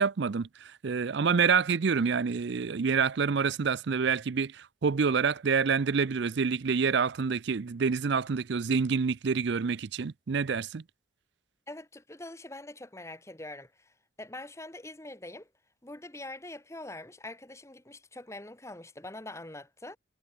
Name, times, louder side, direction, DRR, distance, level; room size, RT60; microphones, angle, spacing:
voice 1, 0.0-10.8, right 5 dB, 55° right, 0.5 m, -27 dB
voice 2, 11.7-15.5 15.8-20.0, left 2 dB, 15° left, 1.2 m, -44 dB
head